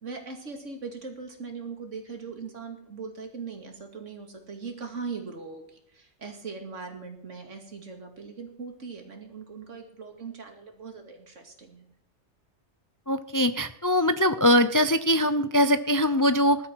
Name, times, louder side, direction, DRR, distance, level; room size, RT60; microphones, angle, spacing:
voice 1, 0.0-11.9, right 5 dB, 90° right, 4 dB, 2.6 m, -40 dB
voice 2, 13.1-16.6, equal, 35° left, 11 dB, 0.3 m, -22 dB
19.5 x 12.0 x 4.6 m, 0.70 s
omnidirectional pair, 1.2 m